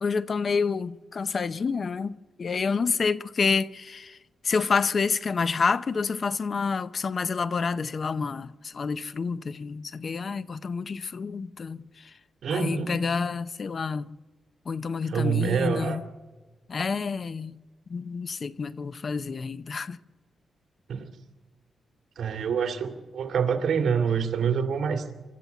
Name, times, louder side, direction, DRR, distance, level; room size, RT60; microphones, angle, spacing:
voice 1, 0.0-4.2 4.4-11.8 12.5-14.1 14.7-16.0 16.7-17.6 17.9-20.0, left 5 dB, 45° left, 0.6 m, -28 dB
voice 2, 12.4-13.0 15.1-16.0 20.9-21.1 22.2-25.1, right 7 dB, 70° right, 2.4 m, -26 dB
25.5 x 13.0 x 8.0 m
cardioid pair, 115°, 0 cm